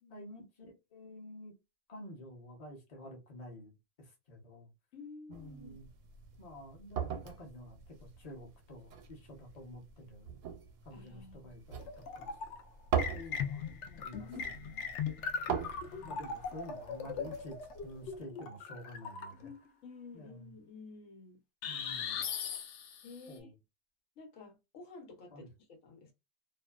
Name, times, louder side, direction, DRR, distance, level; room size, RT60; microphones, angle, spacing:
voice 1, 0.1-1.5 1.9-4.7 5.3-5.9 6.4-10.4 10.8-11.9 12.1-12.3 13.1-14.9 15.5-17.5 17.8-19.5 20.1-20.5 21.7-22.2 23.3-23.5 25.3-25.5, left 1 dB, 35° left, 0.8 m, -50 dB
voice 2, 4.9-5.8 10.9-11.5 13.8-14.0 15.8-16.2 19.8-21.4 23.0-23.5 24.2-26.1, left 4 dB, 90° left, 1.2 m, -52 dB
sound 1, 5.3-18.2, right 7 dB, 80° right, 0.9 m, -42 dB
sound 2, 11.8-12.6 13.0-19.6 21.6-23.2, left 6 dB, 70° left, 0.8 m, -39 dB
2.5 x 2.2 x 2.2 m
omnidirectional pair, 1.3 m